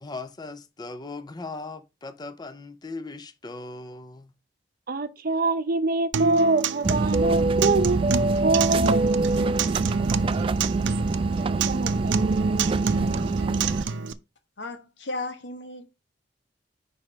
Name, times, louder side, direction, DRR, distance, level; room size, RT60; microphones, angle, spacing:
voice 1, 0.0-4.3, left 3 dB, 25° left, 0.5 m, -38 dB
voice 2, 4.9-9.2 11.6-12.4, right 3 dB, 55° right, 0.7 m, -25 dB
Acoustic guitar, 6.1-14.1, right 5 dB, 85° right, 0.5 m, -28 dB
sound 1, 6.8-13.9, right 3 dB, 30° right, 0.3 m, -25 dB
voice 3, 14.6-15.9, left 2 dB, 70° left, 1.2 m, -35 dB
5.0 x 4.9 x 5.4 m
head